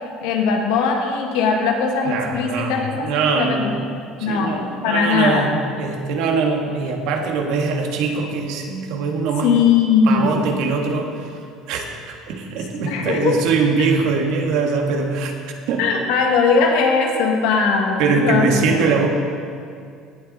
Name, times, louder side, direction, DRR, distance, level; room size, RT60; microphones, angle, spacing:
voice 1, 0.2-3.1 3.3-5.5 9.4-10.4 12.9-13.4 15.8-19.0, left 5 dB, 85° left, 2 dB, 1.8 m, -19 dB
voice 2, 2.0-3.9 4.2-9.5 10.0-11.3 11.7-15.3 15.7-15.9 18.0-19.1, right 4 dB, 75° right, 2 dB, 1.7 m, -22 dB
17.5 x 8.4 x 4.1 m, 2.3 s
cardioid pair, 130°, 0 cm